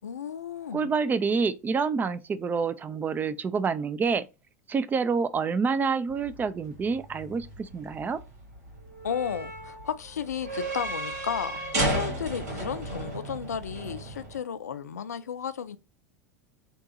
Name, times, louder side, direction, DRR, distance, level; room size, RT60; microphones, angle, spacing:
voice 1, 0.0-0.9 9.0-15.8, left 8 dB, 85° left, 0.4 m, -33 dB
voice 2, 0.7-4.2 4.7-8.2, right 5 dB, 20° right, 0.4 m, -27 dB
sound 1, 6.1-14.4, right 2 dB, 65° right, 2.2 m, -34 dB
3.5 x 3.0 x 2.7 m
hypercardioid pair, 85°, 9 cm